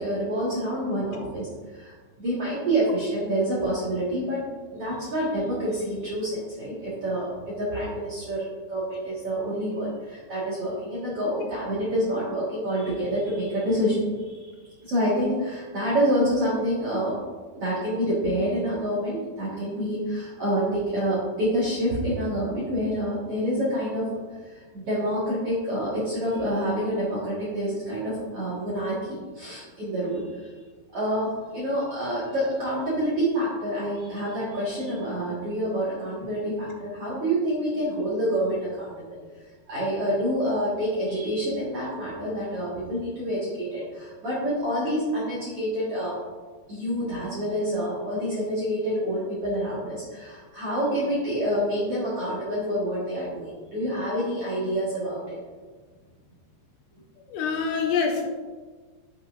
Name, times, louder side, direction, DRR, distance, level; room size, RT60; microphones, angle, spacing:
voice 1, 0.0-1.9 2.2-14.5 14.8-17.2 17.5-24.1 24.4-30.5 30.9-39.2 39.7-46.2 46.7-55.4, equal, 55° right, -8 dB, 1.7 m, -27 dB
voice 2, 57.2-58.3, left 5 dB, 85° left, 2 dB, 3.3 m, -26 dB
11.0 x 5.7 x 2.5 m, 1.4 s
omnidirectional pair, 5.1 m